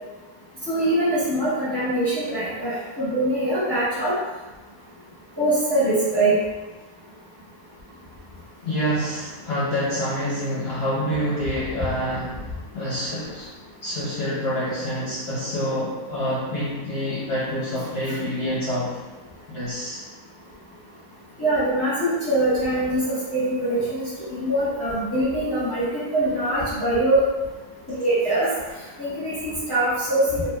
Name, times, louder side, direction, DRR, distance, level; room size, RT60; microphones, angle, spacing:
voice 1, 0.7-4.1 5.4-6.4 21.4-27.2 27.9-28.5 29.0-30.5, right 1 dB, 20° left, -13 dB, 1.0 m, -23 dB
voice 2, 8.6-19.0 19.5-20.0, equal, 55° left, -9 dB, 0.8 m, -27 dB
3.1 x 2.8 x 2.2 m, 1.2 s
omnidirectional pair, 1.5 m